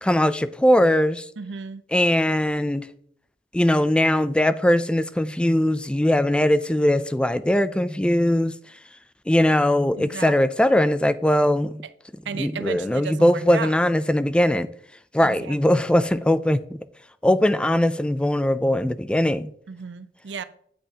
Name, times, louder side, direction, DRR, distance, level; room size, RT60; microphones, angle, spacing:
voice 1, 0.0-1.3 1.9-2.9 3.5-8.5 9.3-11.8 12.3-14.7 15.1-16.8 17.2-19.5, left 1 dB, 5° left, 0.3 m, -20 dB
voice 2, 1.4-1.8 10.0-10.3 12.3-13.7 15.2-15.6 19.7-20.4, right 6 dB, 90° right, 0.6 m, -34 dB
8.8 x 8.6 x 2.8 m
head